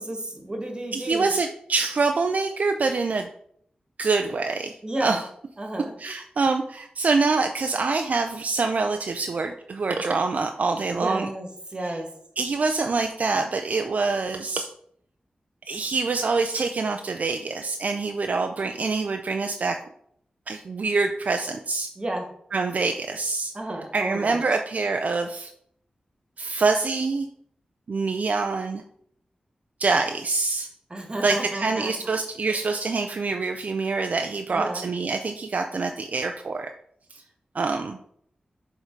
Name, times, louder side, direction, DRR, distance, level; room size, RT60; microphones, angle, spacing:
voice 1, 0.0-1.3 4.8-5.2 5.6-5.9 10.9-12.1 21.9-22.3 23.5-24.4 30.9-31.9 32.5-32.6 34.5-34.8, right 1 dB, 30° right, 3 dB, 1.7 m, -32 dB
voice 2, 0.9-3.3 4.0-5.2 6.0-11.3 11.8-12.0 12.4-14.7 15.7-19.8 20.5-21.9 22.5-23.5 23.9-25.5 26.4-27.3 27.9-28.8 29.8-30.7 31.2-36.7 37.1-37.2 37.5-38.0, right 4 dB, 60° right, 5 dB, 0.5 m, -25 dB
6.5 x 3.8 x 4.6 m, 0.67 s
cardioid pair, 65°, 3 cm